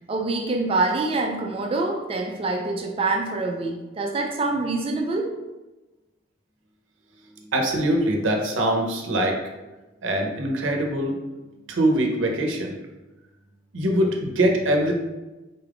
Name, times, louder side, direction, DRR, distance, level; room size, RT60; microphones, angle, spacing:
voice 1, 0.1-5.3, right 3 dB, 30° right, 2 dB, 0.4 m, -25 dB
voice 2, 7.5-9.4 10.0-11.2 11.7-12.8 13.7-14.9, right 1 dB, 80° right, 1 dB, 0.7 m, -23 dB
4.0 x 2.3 x 3.4 m, 1.1 s
head